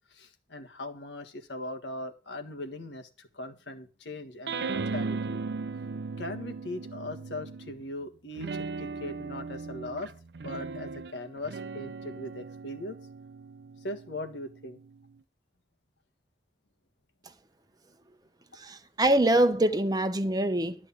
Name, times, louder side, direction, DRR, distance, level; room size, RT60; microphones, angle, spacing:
voice 1, 0.1-5.4 6.2-10.1 10.4-13.0 13.8-14.8, left 1 dB, 80° left, 1.6 m, -39 dB
sound 1, 4.5-7.8 8.4-15.1, right 4 dB, 70° right, 0.5 m, -37 dB
voice 2, 18.6-20.8, right 1 dB, 20° right, 0.8 m, -24 dB
12.5 x 5.0 x 8.5 m
head